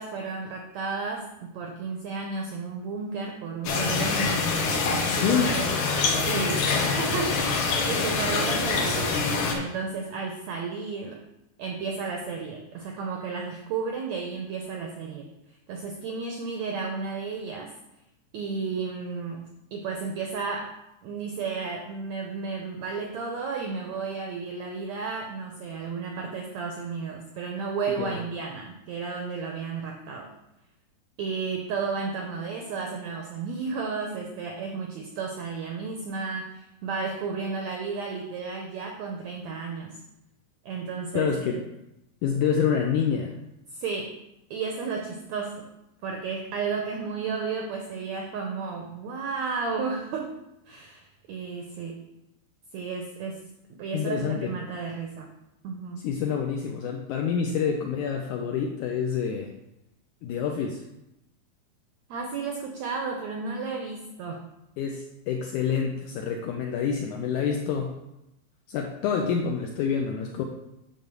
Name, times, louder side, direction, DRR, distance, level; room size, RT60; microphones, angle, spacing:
voice 1, 0.0-4.4 5.1-5.7 6.2-9.3 9.5-11.2 11.6-17.7 18.3-19.4 19.7-20.7 21.0-30.3 31.2-40.0 40.6-41.6 43.7-44.1 44.5-45.7 46.0-50.4 50.7-52.0 52.7-55.3 55.6-56.0 62.1-64.5, right 4 dB, 80° right, 2 dB, 1.6 m, -33 dB
sound 1, 3.7-9.5, left 4 dB, 65° left, 2.4 m, -25 dB
voice 2, 5.2-5.5 28.0-28.2 41.2-41.6 42.2-43.3 53.9-54.6 56.0-59.5 60.2-60.8 64.8-67.9 68.7-70.4, left 7 dB, 80° left, 3 dB, 1.8 m, -27 dB
8.9 x 3.8 x 6.7 m, 0.88 s
omnidirectional pair, 4.2 m